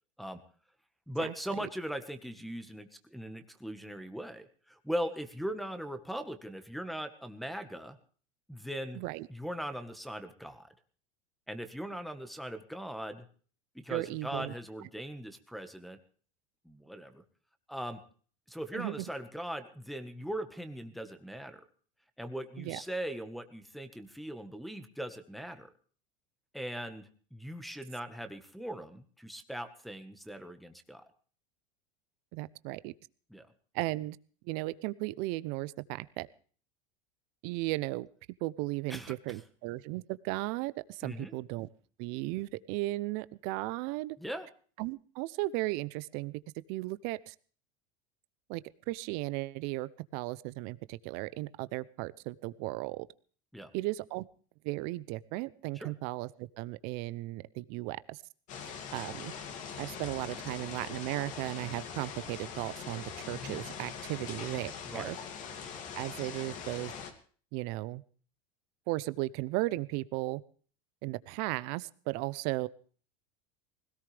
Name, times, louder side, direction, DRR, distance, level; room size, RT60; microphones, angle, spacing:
voice 1, 1.1-8.0 8.5-9.0 9.3-10.7 11.5-13.2 13.7-16.0 16.6-17.2 17.7-18.0 18.5-21.6 22.2-25.7 26.5-31.0 33.3-33.5 38.9-39.4 41.0-41.3 44.2-44.5 53.5-53.7 55.7-55.9 64.9-65.1, equal, ahead, 9 dB, 1.5 m, -40 dB
voice 2, 8.9-9.3 13.9-14.5 18.7-19.0 22.6-22.8 32.3-32.9 33.7-34.2 34.4-36.3 37.4-38.1 38.4-41.7 42.0-44.2 44.8-46.4 46.7-47.3 48.5-48.6 48.9-53.1 53.7-54.2 54.6-58.2 58.9-59.3 59.8-65.2 65.9-66.9 67.5-68.0 68.9-70.4 71.0-72.7, right 20 dB, 60° right, 17 dB, 0.7 m, -36 dB
sound 1, 58.5-67.1, left 6 dB, 45° left, 2.6 m, -42 dB
20.0 x 17.5 x 3.4 m, 0.43 s
supercardioid pair, 130°, 18 cm